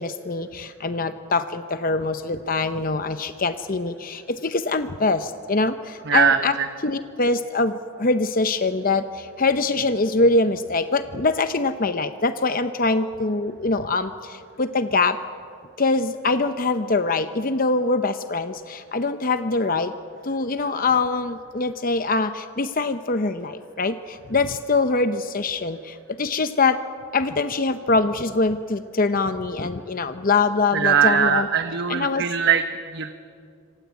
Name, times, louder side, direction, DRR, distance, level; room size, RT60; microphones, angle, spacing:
voice 1, 0.0-6.5 6.8-15.2 15.8-19.9 20.2-26.8 27.1-31.5 31.9-32.2, left 3 dB, 40° left, 10 dB, 0.7 m, -23 dB
voice 2, 6.1-6.7 30.7-32.6 32.9-33.1, right 7 dB, 50° right, 8 dB, 1.0 m, -20 dB
26.5 x 25.5 x 8.3 m, 2.4 s
head